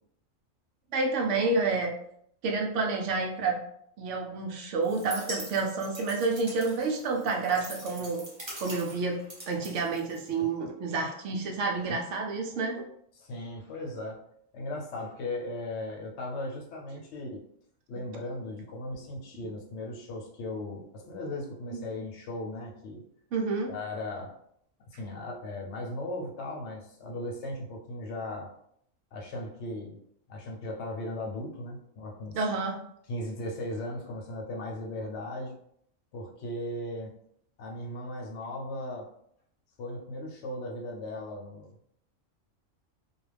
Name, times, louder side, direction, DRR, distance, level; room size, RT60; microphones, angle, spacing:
voice 1, 0.9-1.9 2.4-3.6 4.0-8.2 8.6-12.9 19.4-19.5 21.7-21.8 23.3-23.7 32.3-32.8, right 3 dB, 70° right, 1 dB, 0.9 m, -29 dB
sound 1, 4.8-10.5, right 1 dB, 25° right, 0.6 m, -43 dB
voice 2, 13.1-14.2 14.5-17.4 17.9-23.0 23.7-24.3 24.9-28.5 29.1-30.0 30.3-32.4 33.1-35.5 36.1-37.1 37.6-39.1 39.8-41.9, left 1 dB, 65° left, 1 dB, 0.9 m, -37 dB
2.4 x 2.4 x 3.2 m, 0.69 s
omnidirectional pair, 1.4 m